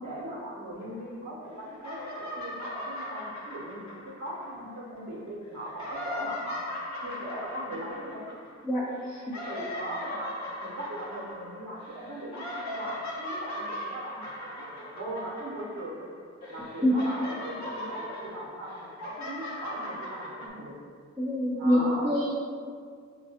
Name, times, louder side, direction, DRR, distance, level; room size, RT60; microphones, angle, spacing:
voice 1, 0.0-6.6 7.0-8.4 9.3-10.3 10.6-16.1 16.5-20.8 21.5-22.2, right 1 dB, 90° right, -5 dB, 0.8 m, -39 dB
sound 1, 0.8-1.5 1.7-5.0 5.5-16.1 16.4-20.5, left 1 dB, 75° left, 0.7 m, -39 dB
voice 2, 21.2-22.3, equal, 5° right, -8 dB, 0.6 m, -25 dB
5.7 x 2.2 x 2.8 m, 2.1 s
wide cardioid pair, 65°, 29 cm